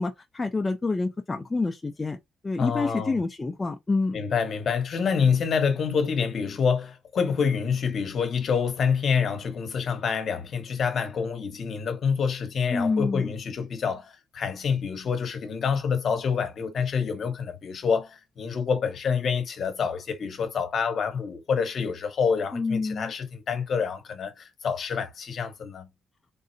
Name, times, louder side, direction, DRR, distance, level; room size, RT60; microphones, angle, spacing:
voice 1, 0.0-2.2 2.4-4.2 12.7-13.3 22.5-23.1, left 3 dB, 25° left, 0.4 m, -27 dB
voice 2, 2.6-3.2 4.1-25.9, left 6 dB, 55° left, 0.9 m, -27 dB
3.7 x 2.0 x 2.5 m
cardioid pair, 90°, 0 cm